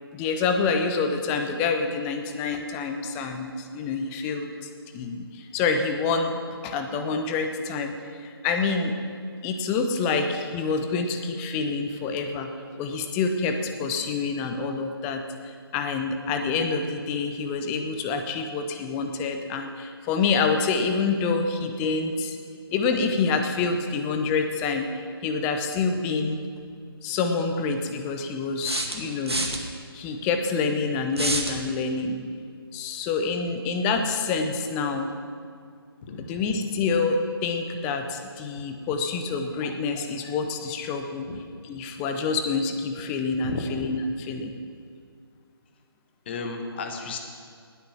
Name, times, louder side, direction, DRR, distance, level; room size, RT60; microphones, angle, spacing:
voice 1, 0.1-4.5 4.9-8.0 8.2-8.9 9.4-12.5 12.8-22.4 22.7-24.9 25.2-26.4 27.0-29.4 29.9-32.2 32.7-35.1 36.3-41.3 41.7-44.5, left 4 dB, 10° left, 6 dB, 0.4 m, -27 dB
sound 1, 26.6-26.7 28.6-29.6 31.1-31.6, right 1 dB, 80° right, 1.9 m, -27 dB
voice 2, 36.0-36.4 41.3-41.4 43.4-43.7 46.2-47.2, left 4 dB, 25° left, 4 dB, 1.3 m, -33 dB
19.0 x 8.7 x 6.1 m, 2.2 s
figure-of-eight pair, 145°, 13 cm